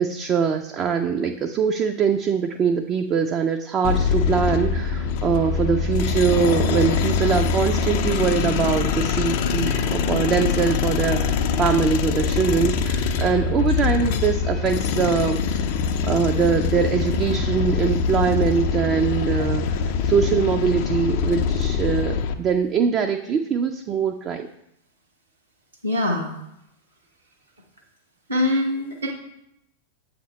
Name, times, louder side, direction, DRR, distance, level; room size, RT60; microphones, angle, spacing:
voice 1, 0.0-15.4 16.0-24.5, right 6 dB, 30° right, 5 dB, 0.4 m, -23 dB
sound 1, 3.8-22.3, left 6 dB, 45° left, 0.4 m, -23 dB
voice 2, 25.8-26.3 28.3-29.1, left 1 dB, 85° right, -3 dB, 0.9 m, -24 dB
7.6 x 2.9 x 5.2 m, 0.81 s
figure-of-eight pair, 90°, 0 cm